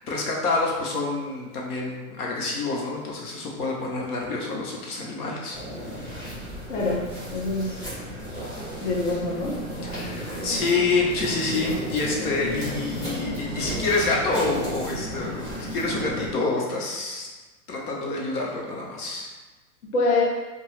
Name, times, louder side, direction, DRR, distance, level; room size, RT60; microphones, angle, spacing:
voice 1, 0.0-5.6 9.8-17.3 17.7-19.3, left 3 dB, 85° left, -2 dB, 0.9 m, -27 dB
sound 1, 5.5-16.3, equal, 10° left, 0.8 m, -34 dB
voice 2, 6.7-7.0 7.3-7.8 8.8-9.6 19.9-20.2, left 3 dB, 50° left, -4 dB, 0.6 m, -24 dB
2.7 x 2.2 x 3.1 m, 1.2 s
hypercardioid pair, 170°, 44 cm